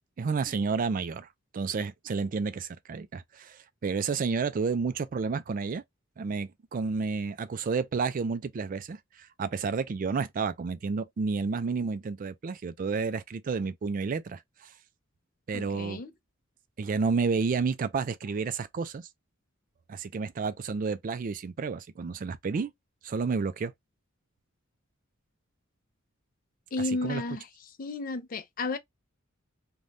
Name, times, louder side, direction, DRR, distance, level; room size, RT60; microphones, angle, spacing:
voice 1, 0.2-1.3 1.5-5.8 6.2-14.4 15.5-16.0 16.8-19.1 19.9-22.7 23.0-23.7 27.0-27.2, right 5 dB, 40° right, 0.3 m, -30 dB
voice 2, 15.5-16.1 26.7-27.5 27.8-28.8, left 3 dB, 45° left, 0.5 m, -32 dB
2.6 x 2.2 x 3.2 m
head